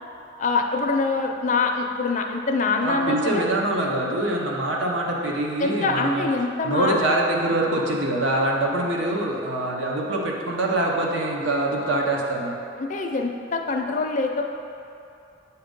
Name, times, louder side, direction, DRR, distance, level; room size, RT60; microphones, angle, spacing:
voice 1, 0.4-3.5 5.6-7.0 12.8-14.4, left 3 dB, 40° left, 3 dB, 0.4 m, -24 dB
voice 2, 2.8-6.3 6.6-12.6, right 1 dB, 85° right, -1 dB, 0.8 m, -24 dB
8.1 x 2.9 x 5.1 m, 2.7 s
head